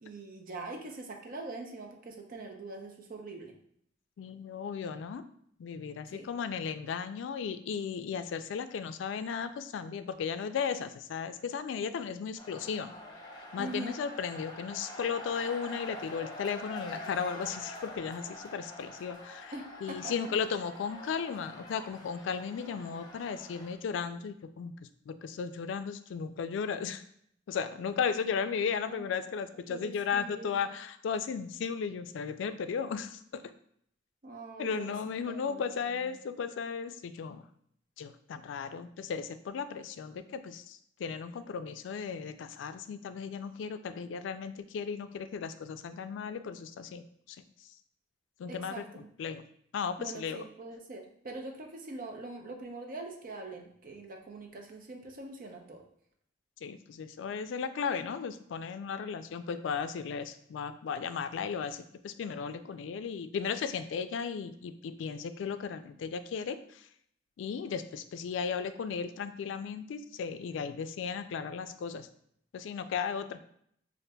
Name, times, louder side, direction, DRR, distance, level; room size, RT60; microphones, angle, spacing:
voice 1, 0.0-3.5 6.1-6.3 13.6-14.0 19.5-20.1 28.9-29.1 29.7-30.5 34.2-34.9 35.3-36.1 48.5-49.1 50.0-55.8, right 2 dB, 50° right, 2 dB, 0.6 m, -43 dB
voice 2, 4.2-5.2 5.6-12.9 13.4-19.5 19.8-24.7 25.1-27.0 27.5-33.4 34.6-37.4 38.0-47.0 48.4-49.4 49.7-50.5 56.6-66.6 67.4-72.1 72.5-73.4, left 6 dB, 85° left, 11 dB, 0.3 m, -35 dB
sound 1, 12.4-23.7, left 1 dB, 20° left, 0.6 m, -46 dB
6.4 x 2.5 x 2.2 m, 0.68 s
head